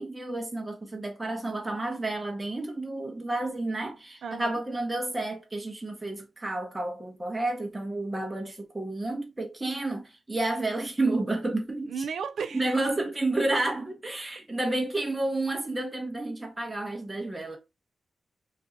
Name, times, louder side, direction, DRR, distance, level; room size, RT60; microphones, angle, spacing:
voice 1, 0.0-12.0 12.5-17.6, right 2 dB, 15° right, 0.7 m, -30 dB
voice 2, 4.2-4.6 11.9-12.8, right 6 dB, 80° right, 0.4 m, -34 dB
2.7 x 2.4 x 3.7 m
wide cardioid pair, 115°, 0 cm